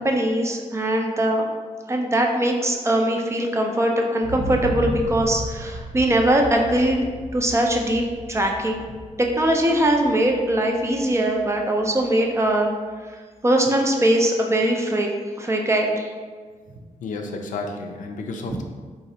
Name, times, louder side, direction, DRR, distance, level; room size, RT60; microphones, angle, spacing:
voice 1, 0.0-1.5 1.9-7.0 7.3-8.0 8.3-8.8 9.2-12.7 13.4-15.1 15.4-16.1 18.5-18.6, right 1 dB, 20° right, 2 dB, 0.4 m, -21 dB
sound 1, 4.2-12.1 12.5-12.6, equal, 90° right, 1.2 m, -34 dB
voice 2, 17.0-18.6, left 3 dB, 80° left, 4 dB, 0.4 m, -31 dB
3.9 x 2.5 x 2.7 m, 1.5 s
cardioid pair, 90°, 13 cm